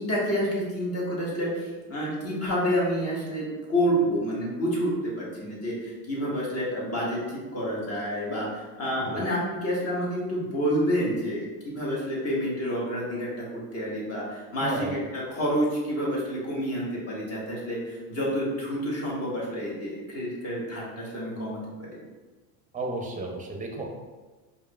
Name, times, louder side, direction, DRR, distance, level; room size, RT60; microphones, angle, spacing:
voice 1, 0.0-21.6, equal, 35° left, -5 dB, 1.4 m, -29 dB
voice 2, 14.6-15.0 22.7-23.9, right 3 dB, 20° right, 2 dB, 0.6 m, -33 dB
4.7 x 2.7 x 2.3 m, 1.3 s
supercardioid pair, 105°, 42 cm